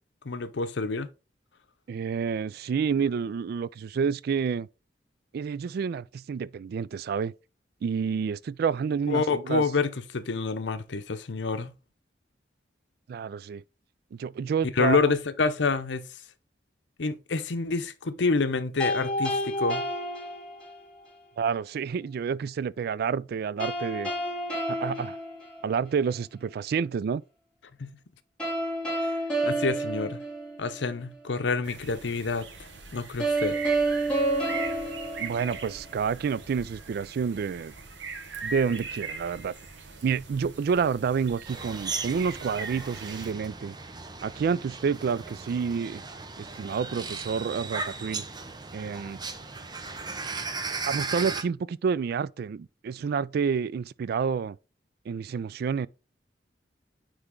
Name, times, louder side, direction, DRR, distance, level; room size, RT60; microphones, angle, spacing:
voice 1, 0.2-1.1 9.1-11.7 14.8-16.1 17.0-19.9 27.8-27.9 29.4-30.2 30.6-32.5 32.9-33.6, left 4 dB, 80° left, 0.7 m, -27 dB
voice 2, 1.9-4.7 5.3-7.3 7.8-9.6 13.1-13.6 14.1-15.0 21.4-24.1 24.7-25.2 25.6-27.2 35.2-37.7 38.4-39.5 40.0-43.7 44.2-46.0 46.4-48.2 48.7-49.2 50.9-54.6 55.1-55.9, right 6 dB, 60° right, 0.3 m, -29 dB
sound 1, 18.8-21.0 23.6-26.0 28.4-30.9 33.2-36.0, right 1 dB, 5° left, 3.2 m, -29 dB
sound 2, 31.6-43.3, right 5 dB, 90° right, 1.3 m, -41 dB
sound 3, 41.5-51.4, right 4 dB, 25° right, 0.7 m, -37 dB
9.7 x 3.4 x 3.7 m
head